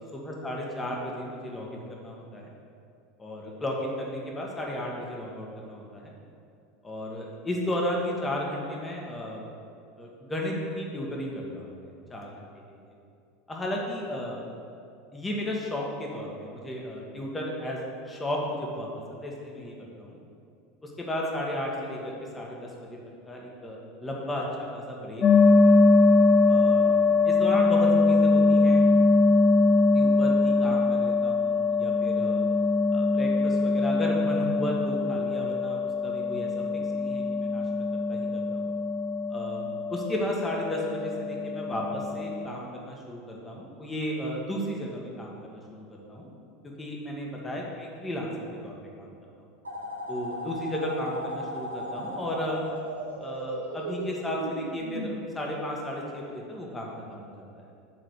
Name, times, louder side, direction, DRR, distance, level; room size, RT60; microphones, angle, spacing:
voice 1, 0.2-2.4 3.2-6.1 6.8-9.4 10.0-12.3 12.8-12.9 13.5-14.4 15.1-17.8 18.1-20.2 20.8-23.0 23.2-25.8 26.5-26.9 27.2-28.8 29.9-32.4 32.9-36.5 36.9-37.6 38.1-38.7 39.3-46.3 46.8-49.1 50.1-52.6 53.2-57.5, left 1 dB, 15° left, -2 dB, 1.5 m, -34 dB
sound 1, 25.2-42.5, left 3 dB, 35° left, 0.5 m, -22 dB
sound 2, 49.6-55.1, right 1 dB, 85° right, 0.8 m, -36 dB
7.4 x 3.9 x 6.6 m, 2.5 s
figure-of-eight pair, 80°, 0 cm